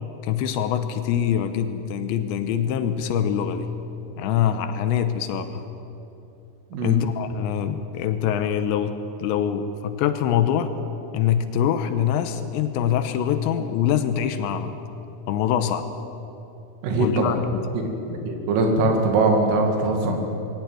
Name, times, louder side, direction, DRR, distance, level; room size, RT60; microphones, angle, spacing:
voice 1, 0.2-3.7 4.2-5.6 6.8-10.7 11.1-14.8 15.3-15.9 17.0-17.7, left 9 dB, 80° left, 9 dB, 2.9 m, -24 dB
voice 2, 16.8-17.4 17.7-20.2, right 2 dB, 85° right, 3 dB, 5.0 m, -22 dB
21.5 x 16.5 x 9.2 m, 3.0 s
omnidirectional pair, 5.7 m